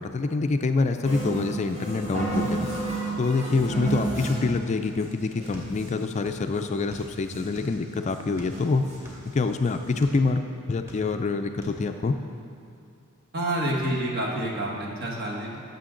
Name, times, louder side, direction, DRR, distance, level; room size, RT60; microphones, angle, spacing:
voice 1, 0.0-2.7 3.2-8.9 9.2-10.4 10.7-12.2, left 3 dB, 35° left, 7 dB, 0.3 m, -26 dB
sound 1, 1.0-4.6 5.0-5.1 5.3-6.1 6.5-6.6 6.9-7.6 8.1-8.2 8.5-9.2 9.6-9.7 9.9-10.0, right 2 dB, 35° right, 2.3 m, -31 dB
sound 2, 5.5-6.5 6.7-7.9 8.3-10.2 10.7-11.3 11.6-11.8, equal, 15° right, 1.7 m, -44 dB
voice 2, 13.3-15.6, right 1 dB, 50° right, -3 dB, 1.5 m, -28 dB
12.5 x 6.9 x 3.8 m, 2.6 s
head